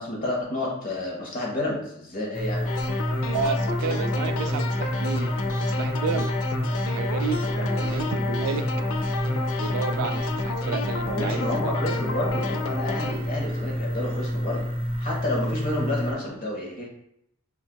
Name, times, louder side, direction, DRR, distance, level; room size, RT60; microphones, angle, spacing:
voice 1, 0.0-2.7 7.6-7.7 11.1-14.7 15.0-16.9, left 2 dB, 40° left, -2 dB, 1.2 m, -30 dB
sound 1, 2.3-16.1, equal, 25° right, 0.5 m, -28 dB
sound 2, 2.6-13.1, left 3 dB, 65° left, 0.5 m, -31 dB
voice 2, 3.2-5.3 5.6-6.3 6.9-8.6 9.6-11.7, right 5 dB, 80° right, 11 dB, 0.3 m, -31 dB
6.0 x 2.4 x 2.3 m, 0.75 s
head